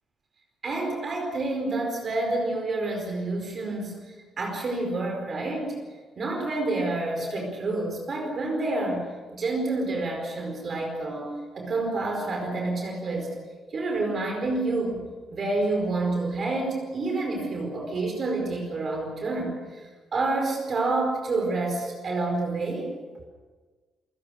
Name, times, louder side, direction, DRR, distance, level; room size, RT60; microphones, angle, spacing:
voice 1, 0.6-5.8 6.2-13.3 13.7-15.0 15.3-22.9, right 2 dB, 35° right, 2 dB, 4.7 m, -28 dB
29.0 x 19.0 x 6.5 m, 1.4 s
cardioid pair, 165°, 0 cm